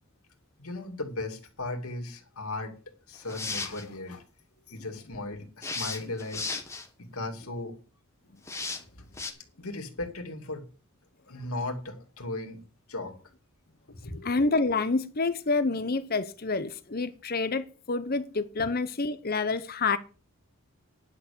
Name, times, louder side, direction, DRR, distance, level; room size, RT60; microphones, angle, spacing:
voice 1, 0.6-4.2 4.7-6.5 7.1-7.8 9.0-9.1 9.6-10.7 11.3-12.6 12.9-13.2 13.9-14.3 18.6-18.7, left 2 dB, 80° left, 2.5 m, -37 dB
sound 1, 3.1-3.8 5.6-6.9 8.5-8.8 9.2-9.3, left 4 dB, 15° left, 1.6 m, -34 dB
voice 2, 14.2-20.0, left 3 dB, 45° left, 0.9 m, -28 dB
10.5 x 6.8 x 6.9 m
head